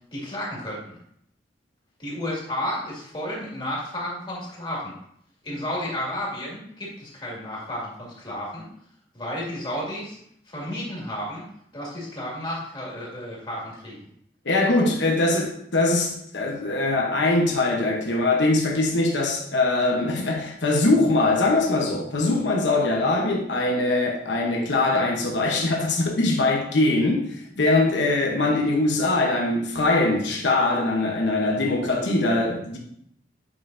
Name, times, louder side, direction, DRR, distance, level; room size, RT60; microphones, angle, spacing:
voice 1, 0.1-1.0 2.0-4.9 5.4-8.7 9.1-10.2 10.5-11.4 11.7-14.0, left 1 dB, 25° left, 2.2 m, -32 dB
voice 2, 14.4-32.8, left 2 dB, 80° left, 1.0 m, -22 dB
8.3 x 5.4 x 2.7 m
head